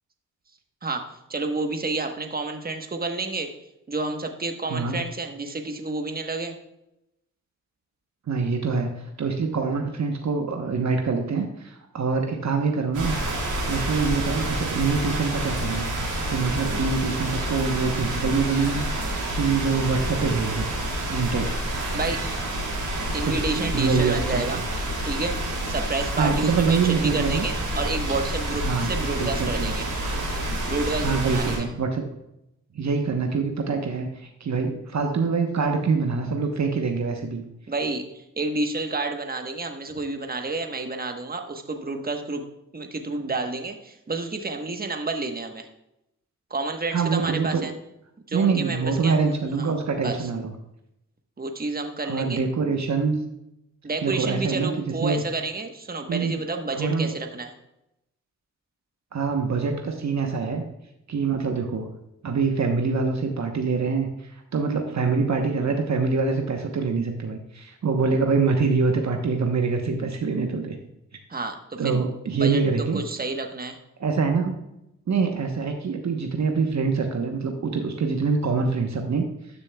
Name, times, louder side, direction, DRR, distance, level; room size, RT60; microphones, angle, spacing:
voice 1, 0.8-3.5 3.9-6.5 21.9-22.2 23.1-24.6 25.0-29.9 30.7-31.7 37.7-42.4 42.7-45.7 46.5-47.7 48.3-49.7 50.0-50.3 51.4-52.4 53.8-57.5 71.3-72.0 72.3-73.8, right 3 dB, 25° right, 5 dB, 1.2 m, -30 dB
voice 2, 8.3-13.2 13.4-20.7 21.1-21.5 23.2-24.6 26.1-27.4 28.6-28.9 29.2-29.7 31.0-32.1 32.7-37.4 46.9-47.7 48.3-50.5 52.0-53.2 54.0-54.7 55.0-55.2 56.1-56.3 56.7-57.1 59.1-60.6 61.1-61.9 62.2-70.7 71.8-73.0 74.0-74.6 75.1-79.2, right 4 dB, 50° right, 4 dB, 1.1 m, -25 dB
sound 1, 12.9-31.6, right 1 dB, 85° right, 2.9 m, -28 dB
12.5 x 6.8 x 2.3 m, 0.85 s
supercardioid pair, 45°, 35 cm